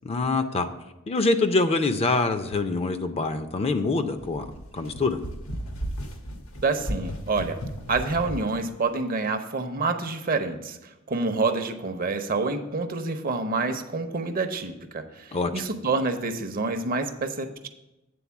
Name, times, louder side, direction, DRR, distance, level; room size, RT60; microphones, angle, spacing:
voice 1, 0.0-0.7 1.1-5.2 15.3-15.5, left 3 dB, 30° left, 9 dB, 0.5 m, -25 dB
sound 1, 4.2-8.5, equal, 80° left, 1.1 m, -35 dB
voice 2, 6.6-7.6 7.9-17.7, right 3 dB, 45° right, 8 dB, 0.7 m, -28 dB
8.5 x 3.9 x 6.9 m, 0.94 s
head